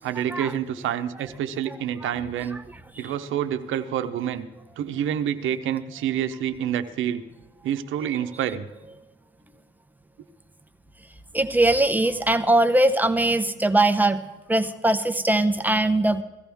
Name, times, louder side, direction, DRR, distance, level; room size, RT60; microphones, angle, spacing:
voice 1, 0.0-2.6 3.0-4.5 4.8-7.2 7.6-8.7, right 10 dB, 80° right, 9 dB, 0.8 m, -27 dB
voice 2, 11.3-16.2, right 1 dB, 10° right, 8 dB, 0.8 m, -21 dB
16.5 x 14.0 x 3.5 m, 1.1 s
cardioid pair, 90°, 20 cm